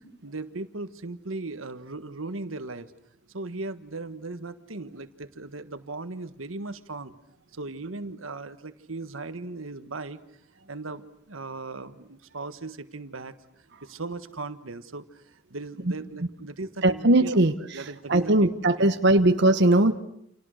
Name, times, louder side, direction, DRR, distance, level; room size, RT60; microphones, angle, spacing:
voice 1, 0.2-2.9 3.3-7.1 7.5-10.2 10.7-13.3 13.8-17.4 17.7-18.5 18.8-18.9, right 3 dB, 85° right, 10 dB, 1.5 m, -37 dB
voice 2, 16.8-17.5 18.1-19.9, right 1 dB, 60° right, 7 dB, 1.2 m, -19 dB
29.5 x 28.0 x 6.5 m, 0.74 s
head